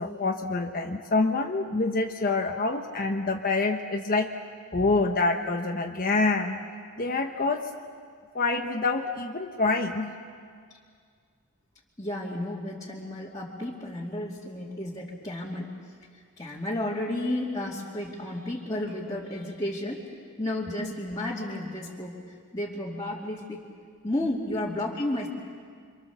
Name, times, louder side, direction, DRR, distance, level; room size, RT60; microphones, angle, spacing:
voice 1, 0.0-4.3 4.7-6.6 7.0-7.7 8.3-10.1 20.8-20.9, left 3 dB, 40° left, 3 dB, 1.2 m, -26 dB
voice 2, 12.0-15.7 16.4-20.1 20.4-22.2 22.5-23.6 24.0-25.3, left 1 dB, 15° left, -6 dB, 2.5 m, -32 dB
28.5 x 25.5 x 7.1 m, 2.1 s
head